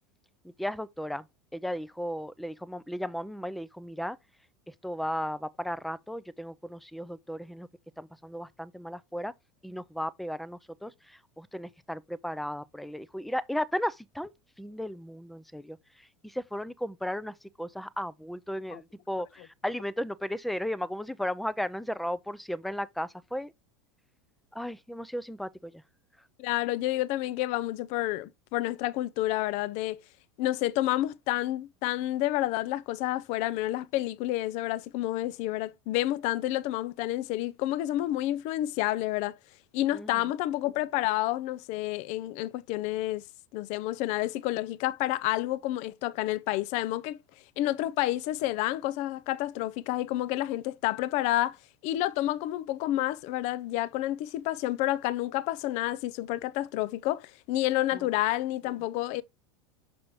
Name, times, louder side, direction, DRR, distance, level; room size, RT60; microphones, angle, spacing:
voice 1, 0.6-1.2 1.5-4.2 4.7-7.7 8.0-9.3 9.6-14.3 14.6-23.5 24.5-25.8 39.9-40.2 57.9-58.1, equal, ahead, 0.4 m, -35 dB
voice 2, 26.4-30.0 30.4-39.4 39.7-43.2 43.5-47.2 47.6-51.6 51.8-59.2, left 15 dB, 55° left, 0.5 m, -29 dB
6.1 x 6.1 x 3.1 m
hypercardioid pair, 100°, 14 cm